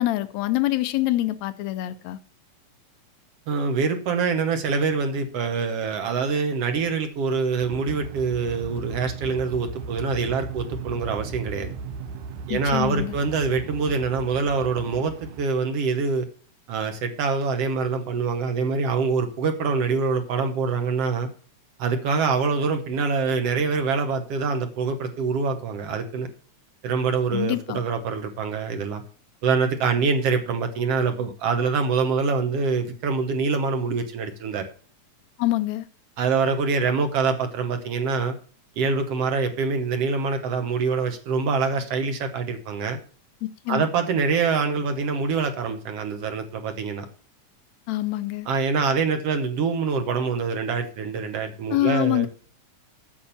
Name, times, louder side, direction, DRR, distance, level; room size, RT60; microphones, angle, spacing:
voice 1, 0.0-2.2 12.5-13.2 27.3-27.8 35.4-35.9 43.4-43.9 47.9-48.5 51.7-52.3, left 16 dB, 80° left, 1.8 m, -25 dB
voice 2, 3.5-11.7 12.5-16.3 16.7-21.3 21.8-26.3 26.8-29.0 29.4-34.7 36.2-38.3 38.8-43.0 43.7-47.1 48.5-52.3, right 5 dB, 65° right, 1.9 m, -25 dB
sound 1, 7.6-15.4, right 5 dB, 85° right, 2.3 m, -37 dB
8.7 x 6.6 x 7.0 m
omnidirectional pair, 3.4 m